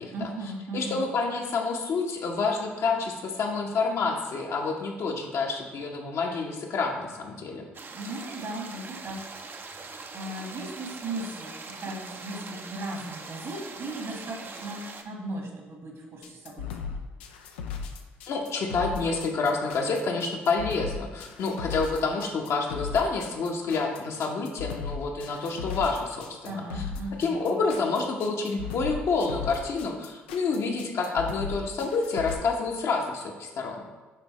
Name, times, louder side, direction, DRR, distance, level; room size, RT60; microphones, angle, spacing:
voice 1, 0.1-1.0 7.9-16.8 26.4-27.5, right 1 dB, 55° right, 0 dB, 1.7 m, -37 dB
voice 2, 0.7-7.6 18.3-26.8 27.2-33.8, left 4 dB, 60° left, 1 dB, 1.0 m, -28 dB
sound 1, 7.7-15.0, right 4 dB, 40° right, 0.7 m, -42 dB
sound 2, 16.2-32.3, left 6 dB, 85° left, 0.4 m, -36 dB
9.2 x 3.4 x 3.1 m, 1.3 s
hypercardioid pair, 50°, 6 cm